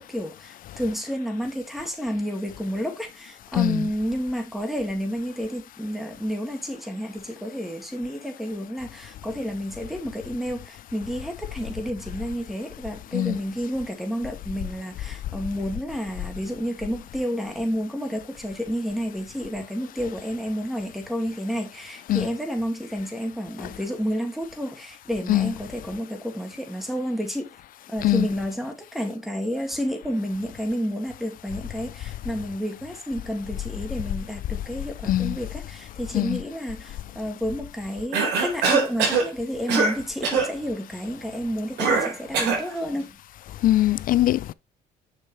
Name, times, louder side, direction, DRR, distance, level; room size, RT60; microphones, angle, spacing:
voice 1, 0.0-27.5 27.9-43.2, equal, ahead, 2.3 m, -30 dB
Cough, 38.1-39.3 39.7-40.0 40.2-40.5 41.8-42.7, right 4 dB, 85° right, 3.9 m, -22 dB
voice 2, 43.6-44.5, left 14 dB, 55° left, 0.4 m, -21 dB
6.7 x 6.5 x 3.3 m
cardioid pair, 110°, 17 cm